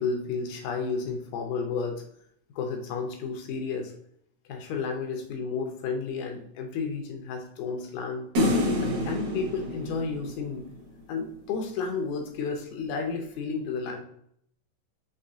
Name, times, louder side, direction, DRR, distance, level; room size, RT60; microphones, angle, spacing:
voice 1, 0.0-2.0 2.6-3.9 4.5-8.3 8.8-10.7 11.1-14.0, left 5 dB, 75° left, 3 dB, 2.0 m, -32 dB
sound 1, 8.4-10.8, left 1 dB, 60° right, 2.7 m, -27 dB
6.5 x 3.1 x 2.6 m, 0.68 s
omnidirectional pair, 4.0 m